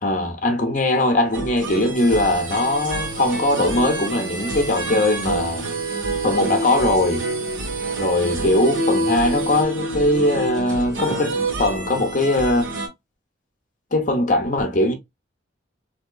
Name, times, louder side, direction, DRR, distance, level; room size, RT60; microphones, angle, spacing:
voice 1, 0.0-5.7 6.2-7.2 8.0-12.7 13.9-14.9, left 1 dB, 40° left, 0.6 m, -20 dB
sound 1, 1.3-12.9, right 2 dB, 75° right, 1.5 m, -27 dB
sound 2, 1.9-9.6, right 5 dB, 40° right, 0.9 m, -38 dB
3.5 x 2.8 x 2.2 m
head